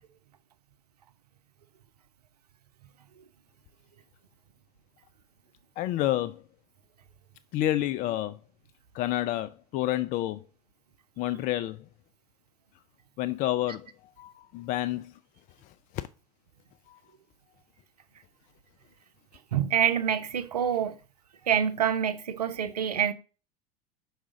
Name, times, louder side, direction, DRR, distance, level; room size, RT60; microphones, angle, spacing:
voice 1, 5.8-6.4 7.5-8.4 8.9-10.5 11.2-11.9 13.2-13.9 14.2-15.2 15.6-16.1 16.9-17.0, left 14 dB, 40° left, 0.4 m, -29 dB
voice 2, 19.5-21.0 21.5-23.1, right 9 dB, 85° right, 0.8 m, -26 dB
6.4 x 5.0 x 3.7 m
hypercardioid pair, 85°, 20 cm